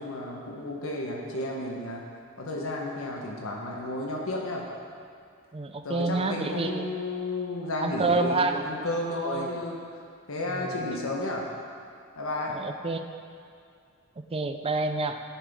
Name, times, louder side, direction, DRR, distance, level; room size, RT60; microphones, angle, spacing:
voice 1, 0.0-2.0 2.4-4.6 5.8-9.8 10.3-11.4 12.2-12.5, left 2 dB, 85° left, -1 dB, 1.1 m, -32 dB
voice 2, 5.5-6.9 7.8-8.6 9.2-9.6 10.5-10.9 12.5-13.1 14.3-15.2, right 3 dB, 30° right, 7 dB, 0.5 m, -28 dB
11.0 x 7.1 x 3.6 m, 2.3 s
head